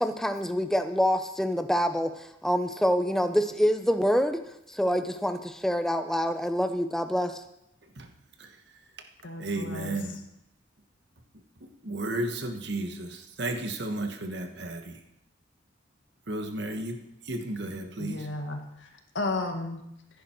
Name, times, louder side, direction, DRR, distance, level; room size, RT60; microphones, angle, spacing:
voice 1, 0.0-4.4 4.7-7.4, equal, ahead, 8 dB, 0.6 m, -26 dB
voice 2, 7.8-8.1 8.4-9.0 9.4-10.2 11.6-15.0 16.3-18.3, right 2 dB, 65° right, 5 dB, 1.4 m, -34 dB
voice 3, 9.2-10.0 18.0-18.9 19.1-19.9, left 2 dB, 85° left, 4 dB, 1.7 m, -33 dB
15.0 x 10.5 x 4.5 m, 0.84 s
head